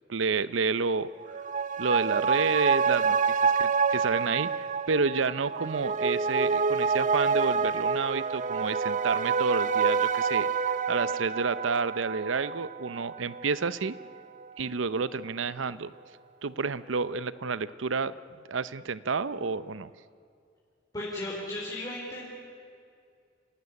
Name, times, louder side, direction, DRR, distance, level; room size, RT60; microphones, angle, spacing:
voice 1, 0.1-1.1 1.8-14.0 14.6-15.9 16.4-18.1 18.5-19.9, right 4 dB, 85° right, 16 dB, 0.7 m, -30 dB
sound 1, 1.2-14.1 14.4-14.5, right 5 dB, 40° right, 0.6 m, -27 dB
voice 2, 20.9-22.2, left 1 dB, 20° left, -5 dB, 4.2 m, -35 dB
28.5 x 16.5 x 9.8 m, 2.4 s
head